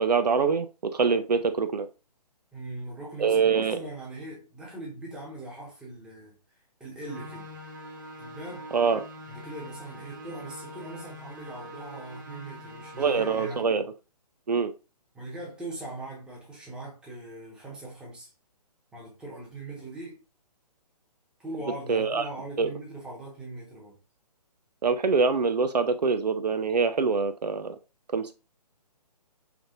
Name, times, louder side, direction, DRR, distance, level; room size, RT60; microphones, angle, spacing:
voice 1, 0.0-1.9 3.2-3.8 8.7-9.0 13.0-13.8 14.5-14.7 21.9-22.2 22.6-22.7 24.8-27.8 28.1-28.3, right 5 dB, 75° right, 0.5 m, -24 dB
voice 2, 2.5-6.4 6.8-7.5 8.2-8.7 9.3-13.7 15.1-18.3 18.9-20.2 21.4-24.0, right 2 dB, 5° right, 1.1 m, -40 dB
sound 1, 7.0-13.6, equal, 30° right, 0.8 m, -44 dB
4.9 x 3.2 x 2.4 m
figure-of-eight pair, 135°, 21 cm